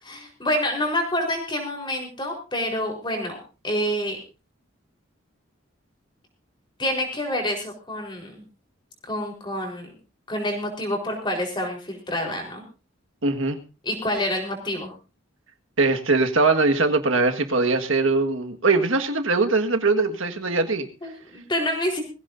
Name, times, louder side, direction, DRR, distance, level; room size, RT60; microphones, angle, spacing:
voice 1, 0.0-3.4 3.6-4.2 6.8-8.4 9.0-9.9 10.3-12.6 13.8-14.9 21.0-22.0, left 1 dB, 20° left, 1 dB, 4.3 m, -27 dB
voice 2, 13.2-13.6 15.8-20.9, right 3 dB, 75° right, 5 dB, 1.7 m, -21 dB
22.0 x 16.0 x 2.7 m, 0.31 s
head